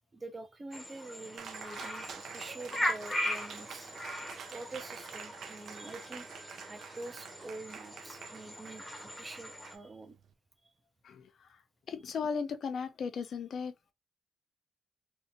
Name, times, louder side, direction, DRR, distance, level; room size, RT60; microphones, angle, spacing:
voice 1, 0.1-3.9 4.5-6.3 6.7-10.2, right 2 dB, 20° right, 0.5 m, -46 dB
sound 1, 0.7-9.8, equal, 5° left, 0.9 m, -39 dB
Cheering, 1.4-10.3, right 7 dB, 65° right, 0.5 m, -48 dB
voice 2, 11.0-11.5 11.9-13.9, left 6 dB, 55° left, 0.6 m, -36 dB
3.3 x 2.8 x 2.6 m
wide cardioid pair, 155°, 0 cm